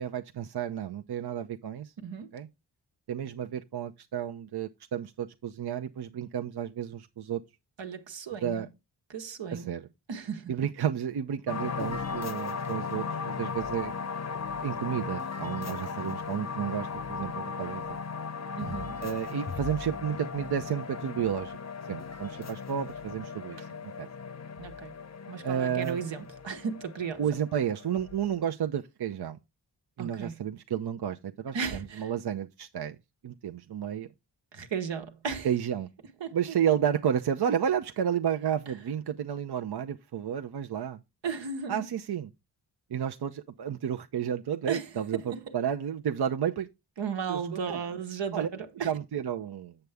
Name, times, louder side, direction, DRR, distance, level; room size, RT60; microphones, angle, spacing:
voice 1, 0.0-1.9 2.3-2.5 3.1-7.4 8.4-8.7 9.5-9.9 10.5-13.9 14.6-18.0 19.0-21.6 21.9-24.1 25.4-26.0 27.2-29.4 30.0-33.0 33.2-34.1 35.4-35.9 36.3-41.0 41.7-42.3 42.9-46.7 47.3-47.8 48.3-48.5 48.8-49.8, right 9 dB, 60° right, 0.7 m, -31 dB
voice 2, 2.0-2.3 7.8-8.7 9.1-9.7 10.1-10.5 18.6-19.0 24.6-24.9 25.3-27.3 30.0-30.4 31.5-32.1 34.5-35.5 36.2-36.6 41.2-41.9 44.7-44.9 45.3-45.4 47.0-48.9, right 6 dB, 80° right, 1.3 m, -35 dB
sound 1, 11.5-28.4, left 5 dB, 40° left, 0.8 m, -37 dB
7.9 x 6.8 x 3.5 m
cardioid pair, 50°, 43 cm